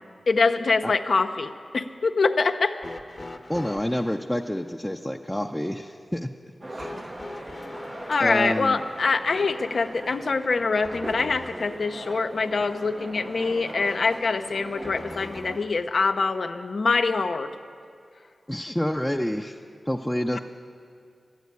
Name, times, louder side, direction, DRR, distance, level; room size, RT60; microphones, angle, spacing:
voice 1, 0.3-2.8 8.1-17.5, left 4 dB, 70° left, 7 dB, 0.6 m, -24 dB
sound 1, 2.8-4.2 6.8-11.9 14.8-15.9 17.1-17.2 18.3-18.4, left 2 dB, 40° left, 0.9 m, -42 dB
voice 2, 3.5-6.3 8.2-8.8 18.5-19.6 19.9-20.4, equal, 10° left, 2 dB, 0.6 m, -28 dB
sound 2, 6.6-15.6, right 1 dB, 40° right, 0.6 m, -40 dB
12.0 x 9.3 x 9.5 m, 2.3 s
cardioid pair, 45°, 0 cm